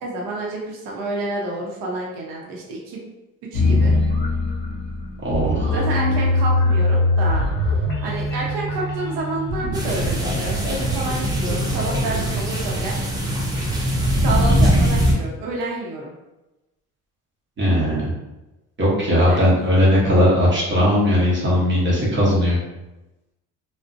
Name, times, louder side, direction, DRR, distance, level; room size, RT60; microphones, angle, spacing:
voice 1, 0.0-3.0 3.5-3.9 5.7-7.5 8.0-13.0 14.2-16.1 19.3-19.4, right 2 dB, 80° right, -2 dB, 0.7 m, -29 dB
sound 1, 3.5-13.7, left 2 dB, 30° left, 0.8 m, -23 dB
voice 2, 5.2-5.7 17.6-18.1 18.8-22.6, equal, 35° right, -6 dB, 0.9 m, -18 dB
sound 2, 9.7-15.1, equal, 15° right, 0.3 m, -21 dB
2.5 x 2.1 x 2.5 m, 1.0 s
cardioid pair, 135°, 33 cm